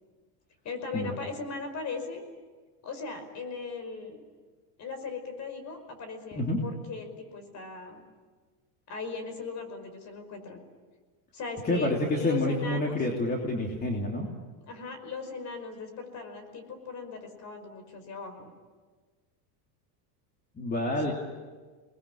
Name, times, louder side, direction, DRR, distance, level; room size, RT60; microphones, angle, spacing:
voice 1, 0.6-2.2 2.8-4.2 4.8-8.0 8.9-10.6 11.3-13.0 14.7-18.5 20.8-21.1, left 4 dB, 35° left, 8 dB, 5.3 m, -38 dB
voice 2, 11.6-14.3 20.6-21.1, left 1 dB, 20° left, 0 dB, 3.1 m, -28 dB
28.0 x 21.0 x 10.0 m, 1.4 s
supercardioid pair, 140°, 48 cm